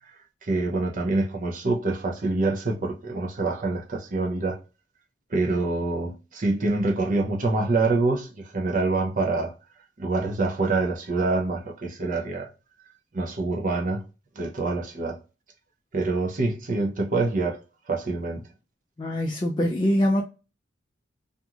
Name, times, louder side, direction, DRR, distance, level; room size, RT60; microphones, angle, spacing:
voice 1, 0.4-4.6 5.3-9.5 10.0-12.5 13.1-14.0 14.4-15.2 15.9-17.6 17.9-18.4, right 3 dB, 45° right, 0.6 m, -26 dB
voice 2, 19.0-20.2, equal, 25° left, 0.4 m, -23 dB
2.9 x 2.5 x 2.3 m
head